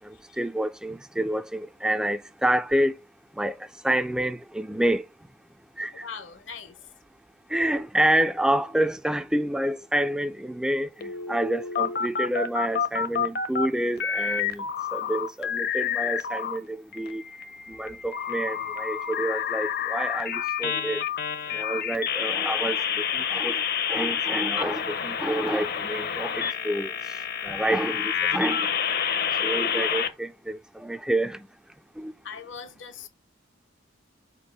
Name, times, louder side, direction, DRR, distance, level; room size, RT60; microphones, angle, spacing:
voice 1, 0.0-2.9 3.4-5.1 5.8-6.1 7.5-14.6 14.9-17.2 17.7-21.0 21.5-23.6 23.9-26.9 27.4-28.7 29.4-31.5 32.0-32.1, right 1 dB, 5° right, 0.3 m, -28 dB
voice 2, 6.0-6.8 21.4-21.6 32.2-33.1, left 6 dB, 75° left, 1.0 m, -40 dB
sound 1, 11.0-13.7 14.0-16.6 16.9-30.1, left 7 dB, 55° left, 0.7 m, -28 dB
4.6 x 4.4 x 5.1 m
head